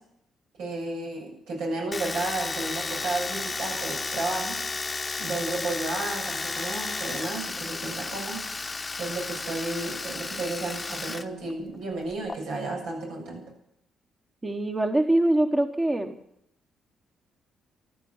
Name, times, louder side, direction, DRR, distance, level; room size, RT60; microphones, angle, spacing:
voice 1, 0.6-4.6 5.2-8.4 9.0-13.4, right 2 dB, 90° right, 0 dB, 7.5 m, -32 dB
Domestic sounds home sounds, 1.9-11.3 11.5-12.4, left 3 dB, 25° left, 0.9 m, -33 dB
voice 2, 14.4-16.2, right 1 dB, 20° right, 6 dB, 1.2 m, -23 dB
14.0 x 12.0 x 7.3 m, 0.76 s
cardioid pair, 90°, 0 cm